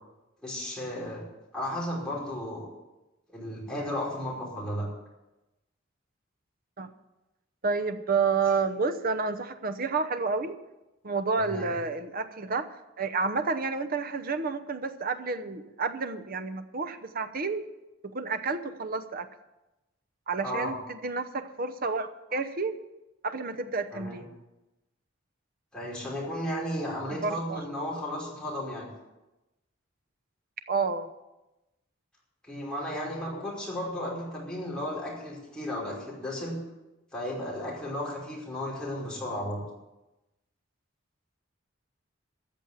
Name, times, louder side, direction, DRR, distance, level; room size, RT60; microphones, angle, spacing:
voice 1, 0.4-1.2 1.5-2.7 3.3-4.9 11.4-11.7 20.4-20.7 23.9-24.2 25.7-28.9 32.4-36.6 37.1-39.6, left 1 dB, 5° left, -6 dB, 5.1 m, -34 dB
voice 2, 7.6-10.6 11.0-12.7 13.0-17.6 18.0-19.3 20.3-22.8 23.2-24.3 27.2-27.6 30.7-31.1, right 4 dB, 45° right, 10 dB, 0.9 m, -30 dB
14.0 x 7.2 x 8.8 m, 1.0 s
head